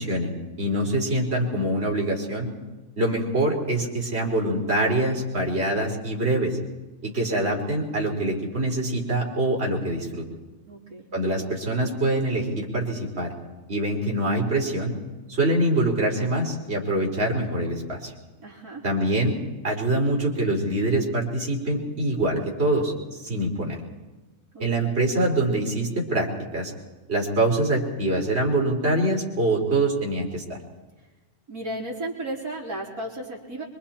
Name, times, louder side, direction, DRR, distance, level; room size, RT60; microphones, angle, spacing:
voice 1, 0.0-2.5 3.0-6.6 7.0-10.2 11.1-13.3 13.7-15.0 15.3-18.1 18.8-19.3 19.6-23.8 24.6-26.7 27.1-30.6, right 1 dB, 40° right, -2 dB, 4.2 m, -24 dB
voice 2, 10.7-11.1 18.4-18.9 24.5-24.9 31.5-33.6, right 1 dB, 75° right, -3 dB, 4.0 m, -34 dB
25.0 x 24.5 x 4.4 m, 1.2 s
omnidirectional pair, 1.6 m